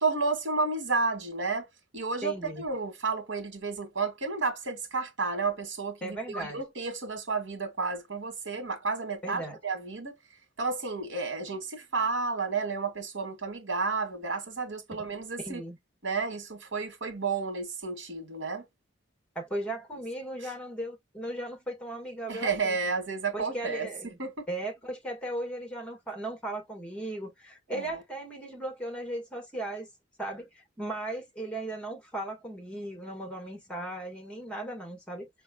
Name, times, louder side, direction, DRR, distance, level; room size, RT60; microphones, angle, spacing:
voice 1, 0.0-1.7 1.9-10.1 10.6-15.6 16.0-18.6 22.3-24.4 27.7-28.0, right 4 dB, 85° right, 1.6 m, -31 dB
voice 2, 2.2-2.6 6.0-6.6 9.2-9.6 15.4-15.8 19.3-22.8 23.3-24.2 24.5-29.9 30.2-35.3, right 1 dB, 5° left, 1.6 m, -37 dB
4.6 x 3.3 x 2.3 m
head